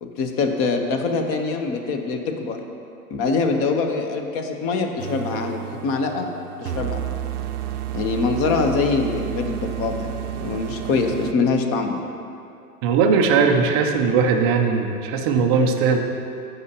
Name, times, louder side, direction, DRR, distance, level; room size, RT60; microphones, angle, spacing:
voice 1, 0.0-2.6 3.1-6.3 6.6-7.0 7.9-10.1 10.4-12.0, left 4 dB, 30° left, 5 dB, 0.8 m, -24 dB
sound 1, 5.0-11.3, right 11 dB, 80° right, 0.6 m, -31 dB
voice 2, 12.8-16.0, right 5 dB, 20° right, 4 dB, 0.3 m, -19 dB
14.5 x 5.5 x 2.8 m, 2.7 s
hypercardioid pair, 105°, 45 cm